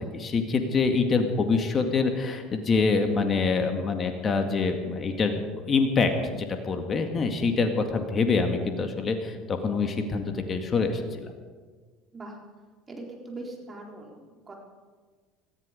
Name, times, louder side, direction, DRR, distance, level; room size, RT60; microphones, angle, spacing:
voice 1, 0.1-5.4 5.7-11.3, left 4 dB, 35° left, 6 dB, 2.0 m, -25 dB
voice 2, 12.9-14.6, right 2 dB, 25° right, 0 dB, 4.2 m, -41 dB
19.0 x 14.0 x 5.2 m, 1.5 s
hypercardioid pair, 75°, 0 cm